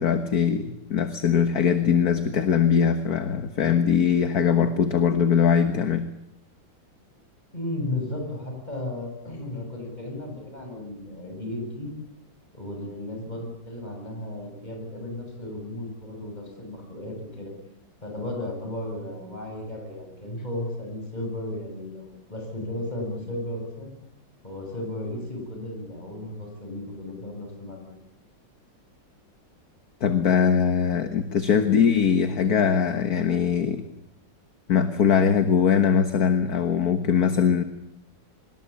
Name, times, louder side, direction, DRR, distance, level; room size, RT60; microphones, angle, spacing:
voice 1, 0.0-6.0 30.0-33.8 34.7-37.6, left 7 dB, 55° left, 9 dB, 1.8 m, -21 dB
voice 2, 7.5-11.9 12.5-17.5 18.0-23.9 24.4-28.0 30.6-30.7, left 1 dB, 20° left, 2 dB, 7.9 m, -34 dB
25.0 x 21.5 x 8.7 m, 0.78 s
omnidirectional pair, 2.0 m